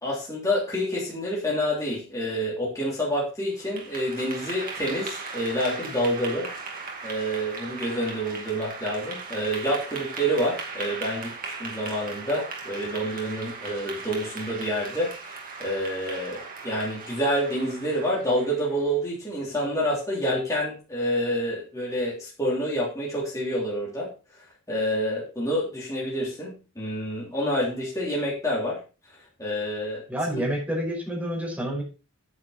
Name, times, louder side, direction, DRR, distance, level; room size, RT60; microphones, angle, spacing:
voice 1, 0.0-6.5 7.0-24.1 24.7-28.8 29.4-30.0 30.4-30.5, equal, 15° left, -6 dB, 3.2 m, -28 dB
Clapping / Applause, 3.5-18.8, right 4 dB, 40° right, 2.4 m, -38 dB
voice 2, 30.1-31.8, right 1 dB, 5° right, -3 dB, 5.2 m, -28 dB
9.1 x 8.7 x 4.3 m, 0.33 s
head